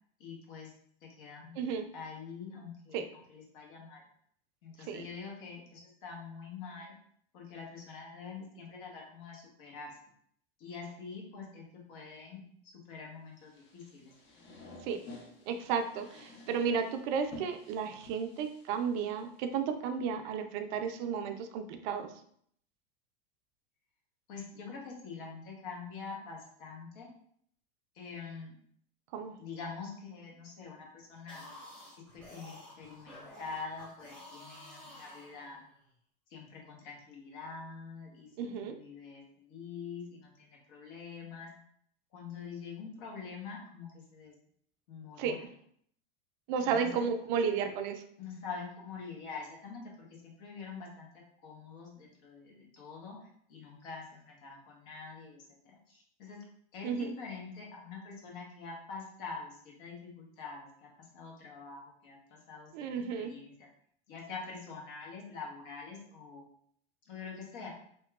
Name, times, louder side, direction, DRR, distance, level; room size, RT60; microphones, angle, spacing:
voice 1, 0.2-0.7 1.0-1.6 1.9-4.0 4.6-6.9 7.3-10.0 10.6-12.4 12.9-14.1 24.3-27.1 27.9-28.6 29.4-31.4 32.1-35.6 36.3-41.5 42.1-44.3 44.9-45.4 46.7-47.0 48.2-51.1 51.4-53.2 53.5-56.4 56.7-60.9 61.1-62.9 63.2-63.7 64.1-66.4 67.1-67.7, left 5 dB, 60° left, -1 dB, 1.0 m, -45 dB
sound 1, 13.4-19.6, left 2 dB, 40° left, 0.7 m, -52 dB
voice 2, 15.5-22.1 29.1-29.3 38.4-38.8 45.2-45.4 46.5-48.0 56.8-57.1 62.7-63.3, right 6 dB, 55° right, 7 dB, 0.4 m, -33 dB
sound 2, 31.1-35.9, left 1 dB, 5° left, 0.8 m, -51 dB
2.9 x 2.2 x 2.3 m, 0.64 s
hypercardioid pair, 105°, 29 cm